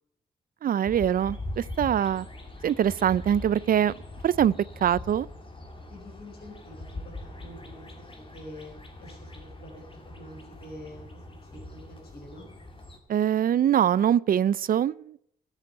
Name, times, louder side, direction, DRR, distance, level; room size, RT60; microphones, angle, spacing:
voice 1, 0.6-2.3 2.6-3.9 4.2-4.5 4.8-5.3 13.1-15.2, right 9 dB, 55° right, 0.4 m, -23 dB
sound 1, 0.9-13.0, left 2 dB, 30° left, 2.3 m, -42 dB
voice 2, 5.9-8.7 9.0-9.8 10.1-12.5, equal, 65° left, 5.0 m, -46 dB
13.0 x 8.1 x 7.9 m
cardioid pair, 75°, 17 cm